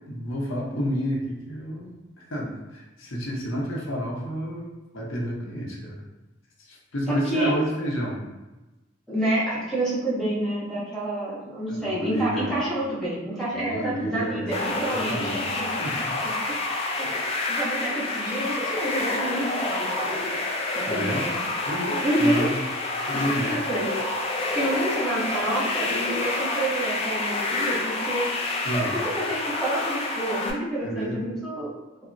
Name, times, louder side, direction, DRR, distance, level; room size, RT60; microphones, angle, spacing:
voice 1, 0.1-4.7 4.9-6.0 6.6-8.2 11.7-12.5 13.5-14.5 14.9-15.5 15.8-16.1 17.0-17.1 20.8-21.3 21.7-22.6 23.1-23.6 28.6-29.0 30.8-31.2, equal, 85° left, -3 dB, 0.7 m, -30 dB
voice 2, 7.1-7.5 9.1-15.3 16.6-20.4 20.7-21.3 22.0-22.5 23.5-23.9 24.5-28.3 28.7-31.7, right 1 dB, ahead, -9 dB, 0.7 m, -28 dB
sound 1, 14.5-30.5, left 2 dB, 30° left, 0.3 m, -28 dB
3.5 x 2.0 x 2.5 m, 1.1 s
head